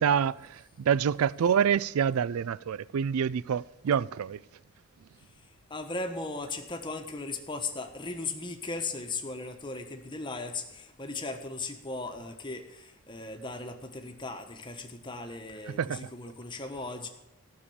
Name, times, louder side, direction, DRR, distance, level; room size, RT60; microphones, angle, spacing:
voice 1, 0.0-4.4 15.7-16.1, right 7 dB, 80° right, 0.4 m, -27 dB
voice 2, 5.7-17.1, left 3 dB, 20° left, 1.2 m, -37 dB
14.0 x 6.8 x 8.6 m
head